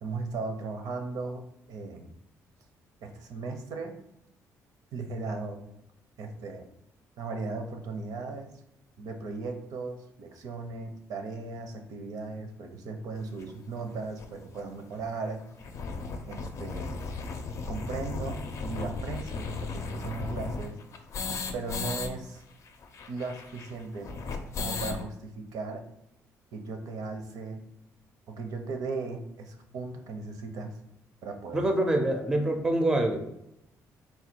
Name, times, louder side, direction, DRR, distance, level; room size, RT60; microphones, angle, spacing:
voice 1, 0.0-1.4 1.7-2.1 3.0-3.9 4.9-5.6 6.2-6.7 7.2-8.5 9.0-15.4 16.3-16.9 17.7-18.4 18.6-20.8 21.5-22.4 23.1-24.1 24.6-25.8 26.5-27.6 28.3-30.7 31.2-31.6, right 3 dB, 75° right, 5 dB, 0.7 m, -37 dB
sound 1, 13.4-13.5 14.2-14.3 14.5-14.6 14.9-15.0 15.4-22.1 22.4-22.5 22.7-25.0, left 4 dB, 50° left, 0.5 m, -36 dB
voice 2, 31.5-33.2, right 1 dB, 10° right, 4 dB, 0.5 m, -25 dB
4.1 x 2.3 x 4.4 m, 0.79 s
cardioid pair, 130°, 6 cm